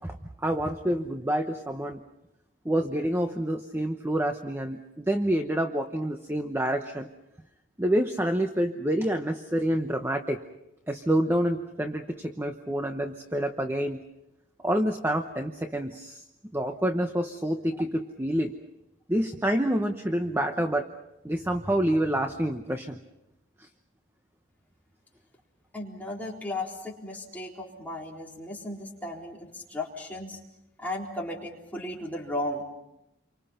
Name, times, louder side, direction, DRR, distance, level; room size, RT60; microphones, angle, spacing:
voice 1, 0.0-2.0 2.6-7.1 7.8-10.4 10.9-14.0 14.6-16.2 16.5-18.5 19.1-20.9 21.2-23.0, right 1 dB, 10° right, 5 dB, 0.9 m, -27 dB
voice 2, 25.7-30.4 30.8-32.6, left 1 dB, 10° left, -3 dB, 3.9 m, -35 dB
29.0 x 24.5 x 5.7 m, 0.89 s
head